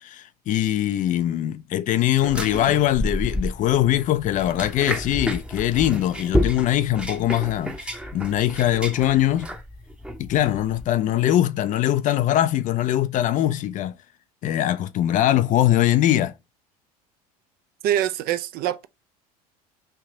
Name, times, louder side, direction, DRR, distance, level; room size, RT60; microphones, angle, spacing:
voice 1, 0.0-9.5 10.2-13.9 14.4-16.3, left 12 dB, 40° left, 0.4 m, -22 dB
sound 1, 2.2-10.9, equal, 5° right, 0.8 m, -30 dB
voice 2, 17.8-18.9, right 11 dB, 50° right, 0.5 m, -24 dB
3.3 x 2.7 x 4.6 m
hypercardioid pair, 80°, 19 cm